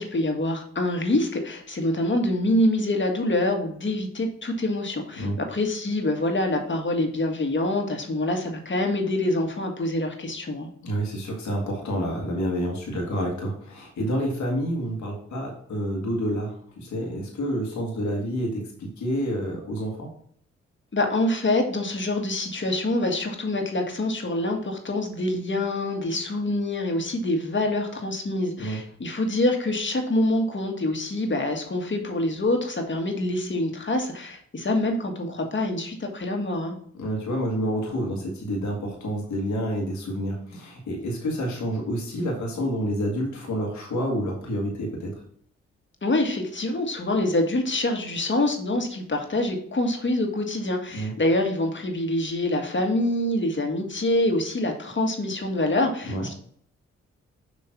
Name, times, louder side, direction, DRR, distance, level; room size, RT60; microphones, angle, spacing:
voice 1, 0.0-10.7 20.9-36.8 46.0-56.3, left 1 dB, 40° left, 3 dB, 1.7 m, -25 dB
voice 2, 10.8-20.1 28.6-28.8 37.0-45.2 50.9-51.1 56.1-56.3, equal, 75° left, -1 dB, 1.7 m, -28 dB
6.7 x 3.1 x 5.9 m, 0.63 s
supercardioid pair, 45°, 29 cm